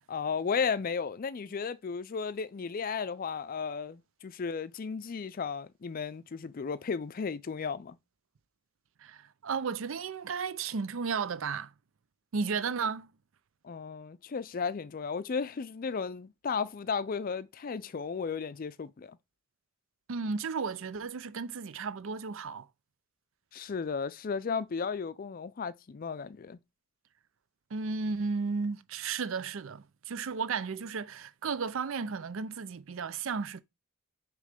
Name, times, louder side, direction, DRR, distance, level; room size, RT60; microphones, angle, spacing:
voice 1, 0.1-8.0 13.6-19.2 23.5-26.6, left 5 dB, 45° left, 0.4 m, -34 dB
voice 2, 9.0-11.7 12.3-13.1 20.1-22.7 27.7-33.6, right 5 dB, 75° right, 0.5 m, -34 dB
6.5 x 3.1 x 5.1 m
head